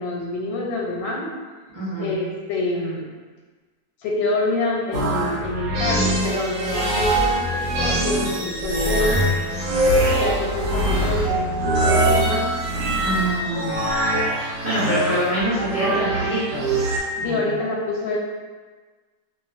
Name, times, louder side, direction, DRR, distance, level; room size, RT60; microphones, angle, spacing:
voice 1, 0.0-1.3 2.0-3.0 4.0-9.2 10.2-12.5 17.2-18.2, left 2 dB, 90° left, -2 dB, 1.3 m, -26 dB
voice 2, 1.7-2.1 12.8-13.9 14.3-16.8 17.2-17.4, equal, 30° right, -13 dB, 0.7 m, -25 dB
sound 1, 4.9-17.0, right 1 dB, 90° right, 1.4 m, -23 dB
2.7 x 2.6 x 2.5 m, 1.4 s
omnidirectional pair, 1.9 m